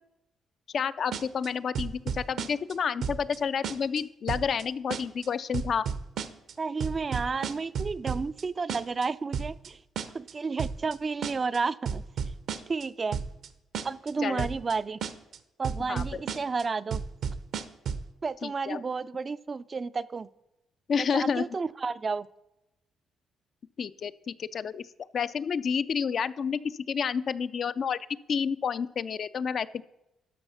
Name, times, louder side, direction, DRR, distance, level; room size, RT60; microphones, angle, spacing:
voice 1, 0.7-5.9 14.2-14.5 15.9-16.2 18.4-18.8 20.9-21.4 23.8-24.9 25.1-29.8, left 6 dB, 55° left, 13 dB, 0.4 m, -30 dB
sound 1, 1.1-1.5 1.7-2.7 3.0-3.4 3.6-4.0 4.3-4.6 4.9-5.3 5.5-6.5 6.8-8.4 8.7-9.0 9.3-9.7 10.0-10.3 10.6-10.9 11.2-11.6 11.9-12.8 13.1-13.5 13.7-14.1 14.4-14.7 15.0-15.4 15.6-16.6 16.9-18.1, right 7 dB, 70° right, 0.8 m, -32 dB
voice 2, 6.6-9.8 10.1-12.0 12.7-13.2 13.8-15.0 15.6-17.0 18.2-20.3 21.0-22.3, right 4 dB, 35° right, 15 dB, 0.3 m, -31 dB
12.5 x 5.4 x 5.6 m, 0.91 s
cardioid pair, 90°, 0 cm